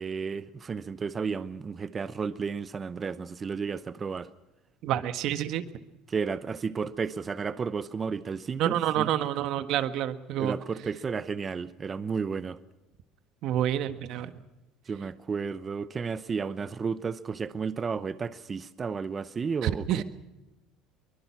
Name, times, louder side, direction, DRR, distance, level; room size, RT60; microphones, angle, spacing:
voice 1, 0.0-4.3 6.1-9.1 10.4-12.6 14.9-20.0, right 5 dB, 25° right, 0.8 m, -32 dB
voice 2, 4.8-5.6 8.6-10.6 13.4-14.3 19.6-20.0, right 11 dB, 60° right, 1.6 m, -28 dB
23.5 x 21.5 x 6.0 m
cardioid pair, 125°, 0 cm